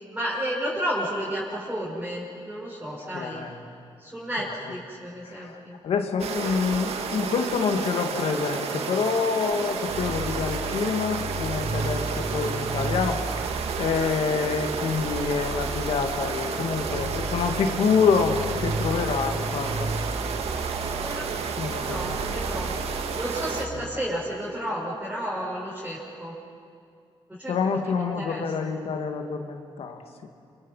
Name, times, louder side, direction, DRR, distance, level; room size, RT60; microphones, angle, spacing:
voice 1, 0.1-3.5 4.0-5.8 6.4-6.6 21.0-21.2 21.7-22.7 23.1-26.3 27.3-28.4, equal, 10° right, -8 dB, 6.9 m, -32 dB
voice 2, 3.1-3.6 4.6-4.7 5.2-13.5 13.8-19.9 21.6-22.2 23.7-23.8 27.5-30.3, left 5 dB, 75° left, 5 dB, 2.2 m, -27 dB
sound 1, 6.2-23.7, right 6 dB, 85° right, 1.8 m, -31 dB
sound 2, 9.9-24.0, right 2 dB, 45° right, 1.9 m, -34 dB
30.0 x 26.5 x 5.7 m, 2.3 s
cardioid pair, 95°, 10 cm